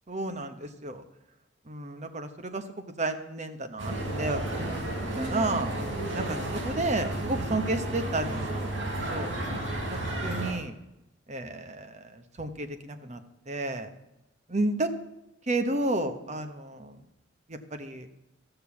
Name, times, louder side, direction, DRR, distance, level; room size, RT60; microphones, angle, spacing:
voice 1, 0.1-1.0 1.7-2.6 3.0-4.8 5.2-5.7 6.1-6.4 6.6-9.3 9.9-10.8 11.3-13.2 13.5-13.9 14.5-14.9 15.5-17.0 17.5-18.1, right 2 dB, 40° right, 8 dB, 1.1 m, -32 dB
sound 1, 3.8-10.5, right 1 dB, 75° right, 3.1 m, -32 dB
13.5 x 6.9 x 7.0 m, 0.92 s
head